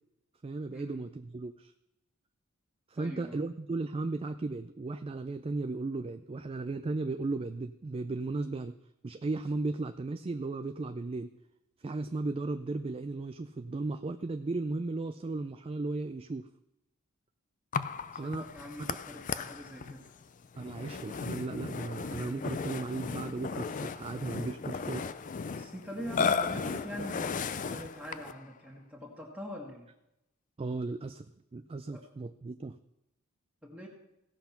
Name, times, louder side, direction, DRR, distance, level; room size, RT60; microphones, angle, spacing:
voice 1, 0.4-1.7 2.9-8.8 9.0-11.3 11.8-16.5 18.1-18.5 18.8-19.0 20.6-25.1 30.6-32.8, right 3 dB, 25° right, 9 dB, 0.4 m, -35 dB
voice 2, 3.0-3.4 18.4-20.1 25.5-27.4 27.7-29.9 31.9-32.0 33.6-33.9, equal, 5° right, -1 dB, 1.7 m, -43 dB
Burping eructation, 17.7-28.4, left 5 dB, 35° left, 0.4 m, -35 dB
16.5 x 5.8 x 5.8 m, 0.89 s
head